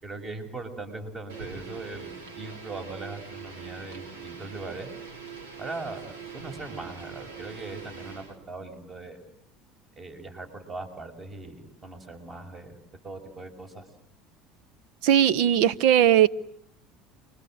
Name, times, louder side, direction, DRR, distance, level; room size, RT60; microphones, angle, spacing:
voice 1, 0.0-4.9 5.6-9.2 10.0-12.8 13.0-13.8, right 3 dB, 30° right, 6.7 m, -40 dB
sound 1, 1.3-8.4, right 6 dB, 90° right, 3.9 m, -42 dB
voice 2, 15.0-16.3, right 10 dB, 70° right, 1.0 m, -19 dB
29.5 x 24.0 x 7.9 m
supercardioid pair, 95°, 0 cm